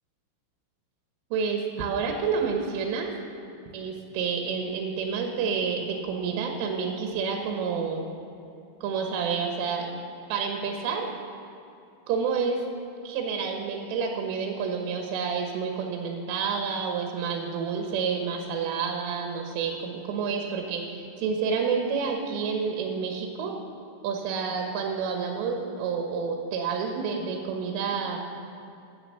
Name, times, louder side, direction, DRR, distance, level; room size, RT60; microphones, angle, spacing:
voice 1, 1.3-3.1 3.7-8.1 8.8-9.9 10.3-11.1 12.1-12.6 13.1-23.6 24.0-28.2, right 5 dB, 85° right, 2 dB, 3.8 m, -29 dB
16.0 x 8.4 x 6.9 m, 2.7 s
omnidirectional pair, 5.7 m